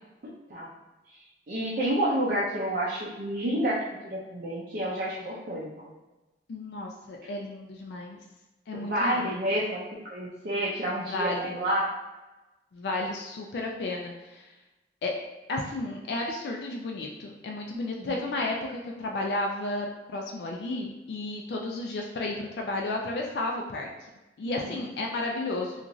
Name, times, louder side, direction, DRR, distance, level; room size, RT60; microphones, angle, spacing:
voice 1, 0.2-0.7 1.5-3.8 4.0-5.7 8.8-11.9 18.0-18.2, right 1 dB, 55° right, -7 dB, 0.5 m, -29 dB
voice 2, 6.5-8.2 8.7-9.4 11.1-11.6 12.7-14.5 15.0-15.2 15.5-23.9 24.4-25.9, left 2 dB, 65° left, 0 dB, 0.3 m, -33 dB
2.9 x 2.4 x 2.5 m, 1.1 s
head